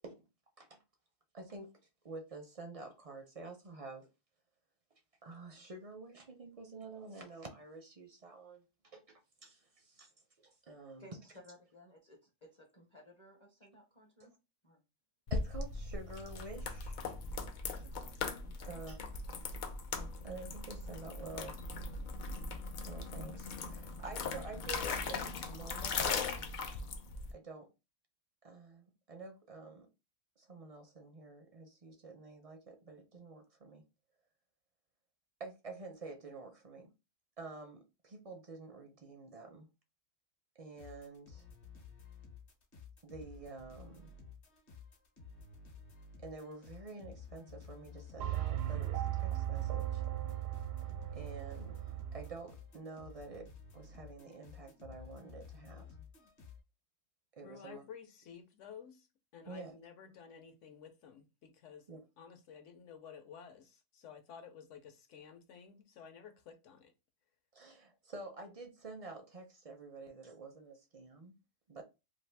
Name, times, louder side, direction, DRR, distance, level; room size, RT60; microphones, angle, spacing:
voice 1, 1.3-1.7 2.0-4.1 5.2-10.1 10.7-11.1 15.3-17.0 18.7-19.0 19.9-21.6 22.9-26.3 27.3-27.7 28.4-29.9 30.4-33.8 35.4-36.9 37.4-39.7 40.6-41.5 43.0-44.1 46.2-50.0 51.1-51.8 52.1-55.9 57.4-57.8 59.4-59.7 61.9-62.0 67.5-71.3 71.7-71.8, right 3 dB, 50° right, 0.4 m, -49 dB
voice 2, 11.0-14.3 14.6-14.8 17.7-18.8, equal, 30° left, 0.6 m, -59 dB
sound 1, 15.3-27.3, left 4 dB, 90° left, 0.4 m, -39 dB
sound 2, 40.8-56.6, left 5 dB, 50° left, 1.0 m, -54 dB
sound 3, 48.2-52.4, right 12 dB, 80° right, 1.0 m, -37 dB
voice 3, 57.4-59.1 59.3-61.9 62.2-66.9, left 7 dB, 70° left, 1.0 m, -53 dB
2.6 x 2.5 x 3.3 m
omnidirectional pair, 1.4 m